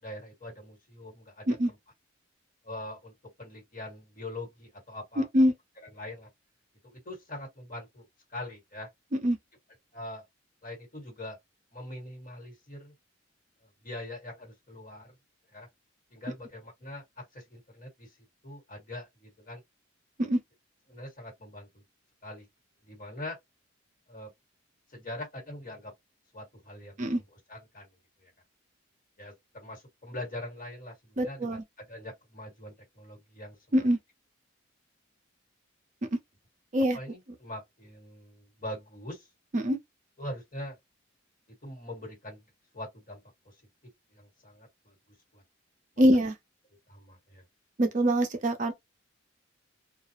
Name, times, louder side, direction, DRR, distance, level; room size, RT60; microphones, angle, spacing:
voice 1, 0.0-1.5 2.6-5.3 5.9-6.3 6.8-8.9 9.9-10.2 10.6-11.4 11.7-12.9 13.8-15.1 15.5-15.7 16.1-18.1 18.4-19.6 20.9-21.8 22.2-22.5 22.8-23.4 24.1-24.3 24.9-25.9 26.3-27.0 27.5-27.9 28.2-28.3 29.2-31.6 31.9-33.6 36.9-39.3 40.2-40.8 41.6-42.4 42.7-43.5 44.1-44.9 45.3-45.4 46.9-47.4, left 1 dB, 40° left, 1.4 m, -42 dB
voice 2, 5.2-5.5 9.1-9.4 20.2-20.4 27.0-27.2 31.2-31.6 33.7-34.0 36.1-36.2 36.7-37.0 39.5-39.8 46.0-46.3 47.8-48.7, equal, 35° right, 0.4 m, -24 dB
2.3 x 2.0 x 2.8 m
head